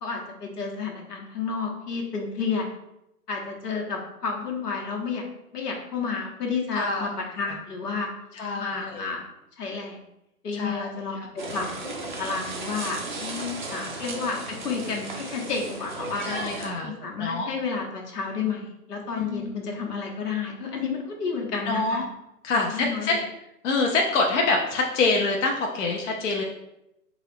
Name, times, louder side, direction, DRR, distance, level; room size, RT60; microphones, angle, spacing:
voice 1, 0.0-2.7 3.3-5.2 5.5-8.1 8.6-9.2 9.6-10.0 10.4-11.7 12.2-13.0 13.7-16.3 16.8-22.0 22.5-23.2, left 5 dB, 80° left, 0 dB, 1.0 m, -31 dB
voice 2, 6.7-7.1 8.3-9.1 10.5-10.9 11.2-11.6 13.2-13.9 16.2-16.9 17.2-17.5 19.2-19.5 21.7-22.0 22.4-23.2 23.6-26.4, left 3 dB, 50° left, 0 dB, 0.6 m, -26 dB
sound 1, 11.4-16.7, right 2 dB, 35° right, 0.4 m, -35 dB
3.8 x 2.4 x 3.4 m, 0.86 s
hypercardioid pair, 140°, 47 cm